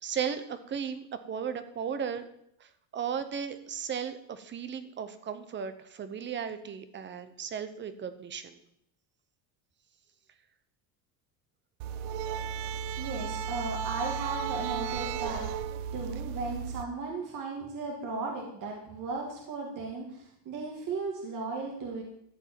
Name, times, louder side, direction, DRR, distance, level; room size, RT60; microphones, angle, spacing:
voice 1, 0.0-2.3 2.6-8.6, right 7 dB, 20° right, 11 dB, 0.8 m, -36 dB
sound 1, 11.8-16.8, right 7 dB, 80° right, 0.9 m, -34 dB
voice 2, 13.0-22.0, right 3 dB, 40° right, 0 dB, 2.3 m, -36 dB
14.0 x 5.3 x 9.1 m, 0.74 s
cardioid pair, 175°, 50 cm